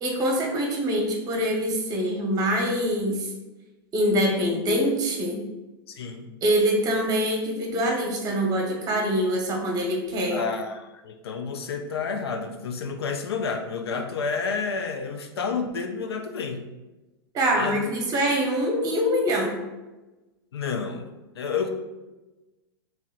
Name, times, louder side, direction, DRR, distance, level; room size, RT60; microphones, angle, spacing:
voice 1, 0.0-3.3 3.9-5.4 6.4-10.5 17.3-19.6, equal, 30° right, 1 dB, 1.0 m, -24 dB
voice 2, 5.9-6.3 10.3-16.7 17.5-17.8 20.5-21.1 21.4-21.7, left 5 dB, 85° left, 5 dB, 0.5 m, -30 dB
3.1 x 3.0 x 3.8 m, 1.1 s
hypercardioid pair, 120°, 13 cm